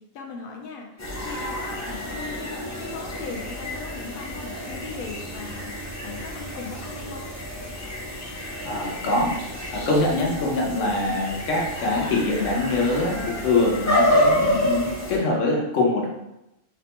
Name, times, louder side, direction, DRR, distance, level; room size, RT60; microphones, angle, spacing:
voice 1, 0.0-5.8 6.0-7.3 11.0-11.2 15.3-15.6, left 4 dB, 55° left, 1 dB, 0.7 m, -38 dB
sound 1, 1.0-15.2, equal, 25° left, 0.3 m, -28 dB
voice 2, 8.6-9.4 9.7-16.1, left 2 dB, 75° left, -1 dB, 1.1 m, -24 dB
4.1 x 2.1 x 2.9 m, 0.88 s
omnidirectional pair, 1.3 m